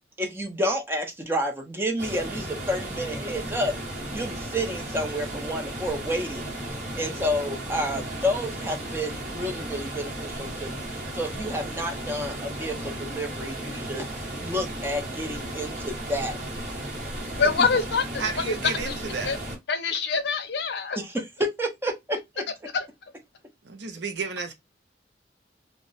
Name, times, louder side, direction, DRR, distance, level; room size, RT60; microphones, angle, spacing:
voice 1, 0.2-3.7 4.1-6.5 7.0-10.8 11.1-16.4 21.0-22.4, equal, 15° right, 0.5 m, -30 dB
sound 1, 2.0-19.6, right 1 dB, 45° right, 1.1 m, -35 dB
voice 2, 17.2-18.6 18.9-19.0 19.2-19.4 19.7-21.0 22.7-22.9, left 5 dB, 70° left, 0.5 m, -25 dB
voice 3, 18.2-19.3 23.6-24.5, right 4 dB, 80° right, 0.6 m, -32 dB
2.3 x 2.0 x 3.8 m
head